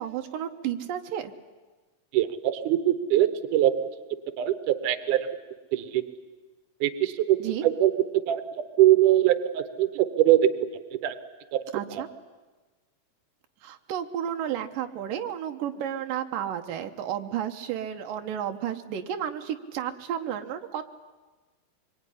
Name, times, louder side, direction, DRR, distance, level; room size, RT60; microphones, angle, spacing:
voice 1, 0.0-1.3 7.4-7.7 11.7-12.1 13.6-20.8, right 10 dB, 90° right, 5 dB, 2.8 m, -32 dB
voice 2, 2.1-3.7 4.4-5.2 5.7-6.0 6.8-7.4 7.6-7.9 8.3-8.4 8.8-10.4 11.0-11.2, right 13 dB, 75° right, 11 dB, 2.6 m, -22 dB
24.5 x 23.0 x 10.0 m, 1.3 s
omnidirectional pair, 3.8 m